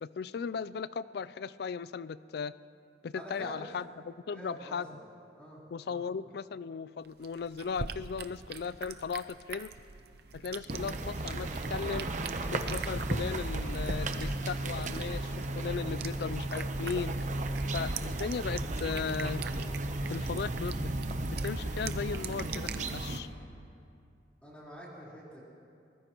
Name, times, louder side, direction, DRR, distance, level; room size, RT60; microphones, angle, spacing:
voice 1, 0.0-2.5 3.0-4.9 5.7-9.7 10.3-12.1 12.5-17.2 17.7-19.4 20.1-20.9 21.2-23.3, left 6 dB, 60° left, 17 dB, 0.4 m, -37 dB
voice 2, 3.1-3.7 4.3-5.0 5.4-5.6 5.9-6.1 10.3-10.6 24.4-25.4, right 1 dB, 5° left, -7 dB, 4.0 m, -46 dB
sound 1, 7.0-22.9, right 6 dB, 60° right, 0.5 m, -45 dB
sound 2, 10.7-23.2, right 2 dB, 45° right, 0.8 m, -34 dB
23.5 x 20.0 x 3.0 m, 2.5 s
head